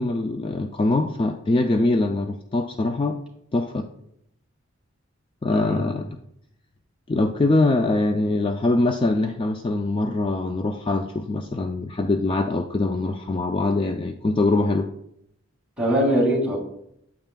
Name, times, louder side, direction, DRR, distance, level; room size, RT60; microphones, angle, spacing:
voice 1, 0.0-3.2 3.5-3.9 5.4-6.0 7.1-14.9, left 2 dB, 25° left, 5 dB, 0.3 m, -23 dB
voice 2, 5.5-6.0 15.8-16.6, equal, 5° right, -4 dB, 2.2 m, -22 dB
8.9 x 7.8 x 2.2 m, 0.75 s
head